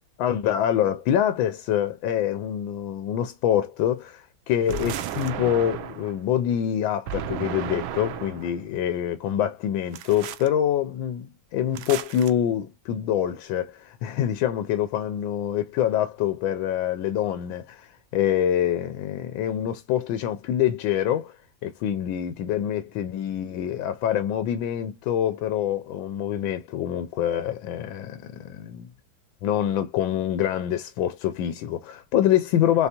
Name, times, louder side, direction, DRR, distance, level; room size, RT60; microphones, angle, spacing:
voice 1, 0.2-21.4 21.6-28.9 29.4-32.9, left 10 dB, 80° left, 1.3 m, -25 dB
sound 1, 4.7-6.2 7.1-8.5 9.9-10.5 11.7-12.3, right 9 dB, 85° right, 1.4 m, -33 dB
4.1 x 3.3 x 2.8 m
omnidirectional pair, 2.1 m